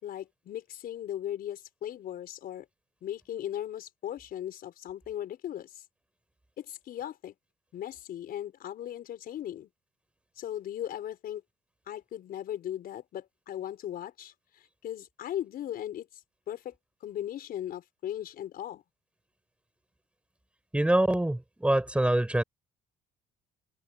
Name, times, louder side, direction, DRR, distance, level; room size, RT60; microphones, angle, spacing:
voice 1, 0.0-2.7 3.0-5.8 6.6-7.3 7.7-9.7 10.4-11.4 11.9-16.1 16.5-16.7 17.0-18.8, left 11 dB, 60° left, 5.1 m, -38 dB
voice 2, 20.7-22.4, right 1 dB, 5° right, 5.3 m, -25 dB
cardioid pair, 110°, 17 cm